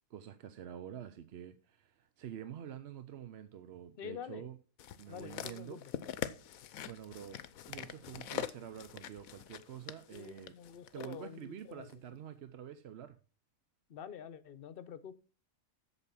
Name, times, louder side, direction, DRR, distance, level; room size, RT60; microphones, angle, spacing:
voice 1, 0.1-4.6 5.0-5.8 6.9-7.4 7.7-10.5 10.9-13.1, right 9 dB, 55° right, 0.8 m, -47 dB
voice 2, 4.0-4.4 5.1-5.9 10.1-12.2 13.9-15.1, left 9 dB, 50° left, 0.9 m, -47 dB
sound 1, 4.8-11.2 11.9-12.0, left 10 dB, 80° left, 1.1 m, -44 dB
8.2 x 7.3 x 5.7 m
omnidirectional pair, 1.5 m